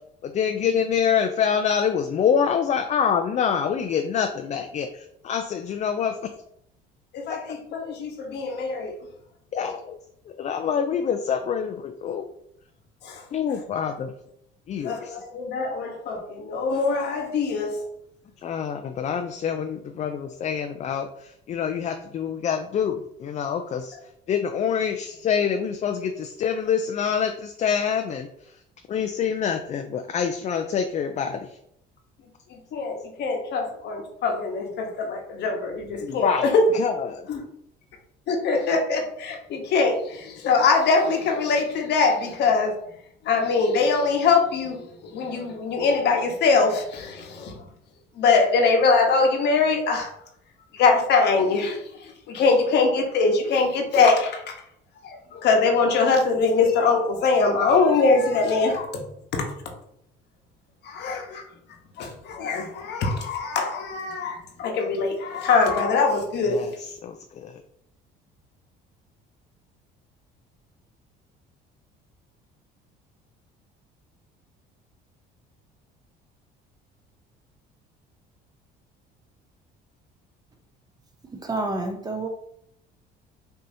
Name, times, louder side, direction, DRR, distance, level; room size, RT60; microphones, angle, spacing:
voice 1, 0.2-6.2 9.5-10.0 10.3-12.2 13.3-14.1 14.7-15.2 18.4-24.0 24.3-28.5 28.9-31.6 36.0-37.3 66.5-66.7 67.0-67.6, left 7 dB, 35° left, 0.4 m, -26 dB
voice 2, 7.1-9.1 13.0-13.2 14.8-17.8 32.5-36.7 37.3-37.4 38.3-42.8 43.2-47.7 48.1-50.1 50.7-54.6 55.0-59.0 59.3-59.5 60.8-61.4 62.0-66.7, left 4 dB, 60° left, 1.0 m, -23 dB
voice 3, 81.3-82.3, right 2 dB, 20° right, 0.6 m, -29 dB
5.4 x 2.8 x 2.7 m
cardioid pair, 110°, 20 cm